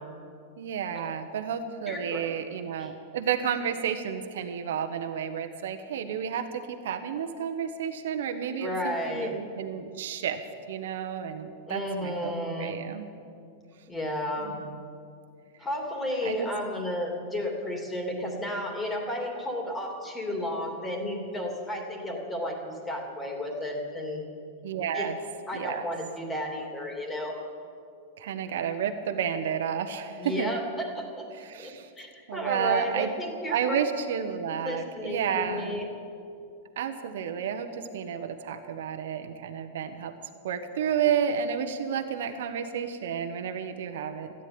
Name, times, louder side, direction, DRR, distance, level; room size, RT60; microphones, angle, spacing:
voice 1, 0.6-10.4 10.7-12.3 12.6-13.1 14.4-14.8 16.2-16.5 24.6-25.2 25.5-25.8 28.2-30.5 31.4-31.9 32.3-33.1 33.5-35.8 36.8-40.1 40.4-44.3, right 8 dB, 75° right, 6 dB, 1.1 m, -31 dB
voice 2, 1.9-2.3 2.8-2.9 8.6-9.3 11.7-12.8 13.9-14.5 15.6-24.2 24.9-25.1 25.5-27.3 30.2-31.3 31.6-31.7 32.0-33.8 34.6-35.9, left 1 dB, 15° left, 1 dB, 3.1 m, -32 dB
13.5 x 10.0 x 9.7 m, 2.5 s
hypercardioid pair, 130°, 0 cm